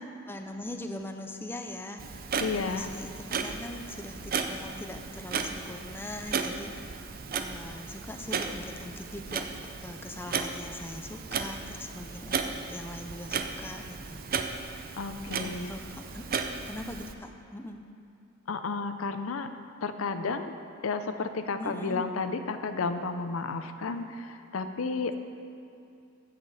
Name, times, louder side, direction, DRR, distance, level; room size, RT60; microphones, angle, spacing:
voice 1, 0.3-9.5 9.8-14.2 15.4-16.2 16.7-17.9 21.6-22.1, left 1 dB, 10° left, 4 dB, 0.5 m, -41 dB
Clock, 2.0-17.1, right 5 dB, 45° right, 0.5 m, -35 dB
voice 2, 2.4-2.9 15.0-15.7 18.5-19.5 19.8-20.6 20.8-25.2, left 4 dB, 85° left, 9 dB, 0.6 m, -32 dB
15.0 x 6.8 x 4.1 m, 2.6 s
head